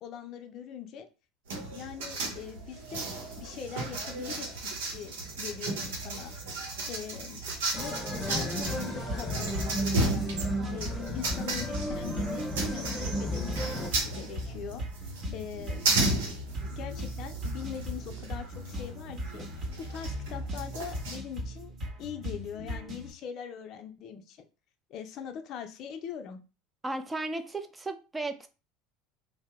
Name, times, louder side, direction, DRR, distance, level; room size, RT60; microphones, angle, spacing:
voice 1, 0.0-1.1 1.7-3.1 3.4-6.3 6.9-7.4 7.8-10.1 10.7-15.9 16.7-24.5 24.9-26.4, left 8 dB, 55° left, 5 dB, 0.4 m, -42 dB
sound 1, 1.5-21.2, right 2 dB, 80° right, 0.8 m, -35 dB
sound 2, 7.7-13.9, equal, 15° left, 0.8 m, -34 dB
sound 3, 9.1-23.1, equal, 40° right, 1.4 m, -38 dB
voice 2, 26.8-28.5, right 2 dB, 15° right, 7 dB, 0.5 m, -35 dB
2.7 x 2.0 x 3.5 m, 0.33 s
hypercardioid pair, 85°, 0 cm